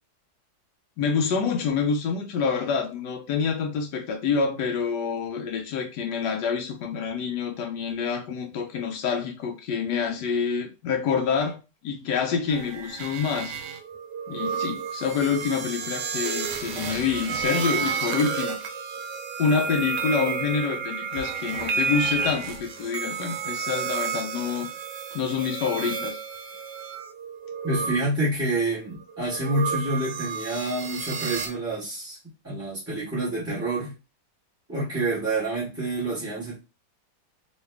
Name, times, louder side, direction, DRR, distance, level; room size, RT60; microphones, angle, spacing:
voice 1, 1.0-13.6 14.3-18.6 19.4-24.7 25.1-26.2, left 6 dB, 80° left, 1.2 m, -27 dB
sound 1, 12.5-28.0 28.9-31.5, right 6 dB, 90° right, 1.3 m, -31 dB
voice 2, 27.6-32.2 32.4-33.9 34.7-36.5, right 2 dB, 10° right, 1.0 m, -28 dB
3.1 x 2.8 x 3.3 m
omnidirectional pair, 1.8 m